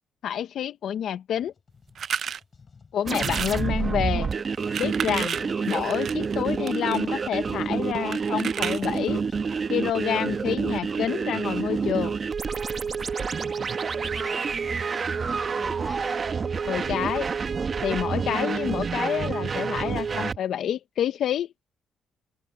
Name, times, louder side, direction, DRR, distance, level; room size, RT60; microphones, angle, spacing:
voice 1, 0.2-1.5 2.9-4.3 4.8-9.2 9.7-12.2 16.6-17.3 17.8-21.5, left 10 dB, 70° left, 0.8 m, -28 dB
Scratching (performance technique), 1.4-17.3, left 5 dB, 40° left, 6.6 m, -56 dB
sound 1, 2.0-2.4 3.1-3.6 4.5-7.0 8.1-9.1, right 8 dB, 55° right, 0.5 m, -32 dB
sound 2, 3.1-20.4, right 5 dB, 40° right, 1.2 m, -28 dB
voice 2, 14.0-16.2, left 1 dB, 10° left, 6.7 m, -45 dB
open air
cardioid pair, 90°, 0 cm